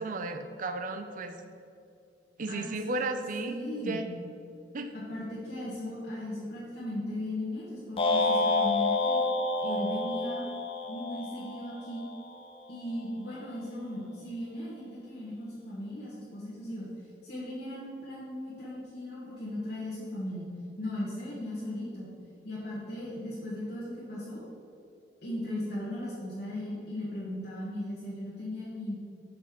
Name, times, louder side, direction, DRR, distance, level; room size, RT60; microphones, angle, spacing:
voice 1, 0.0-1.4 2.4-3.6 3.9-4.1 4.7-4.9, right 2 dB, 50° right, 7 dB, 0.6 m, -34 dB
voice 2, 2.5-3.0 3.4-4.0 4.9-9.2 9.6-10.4 10.9-12.0 12.7-16.9 17.2-20.5 20.8-22.1 22.4-24.4 25.2-29.0, left 1 dB, 60° left, -8 dB, 1.6 m, -37 dB
sound 1, 8.0-12.3, left 3 dB, 30° left, 0.6 m, -29 dB
5.7 x 5.3 x 6.0 m, 2.6 s
head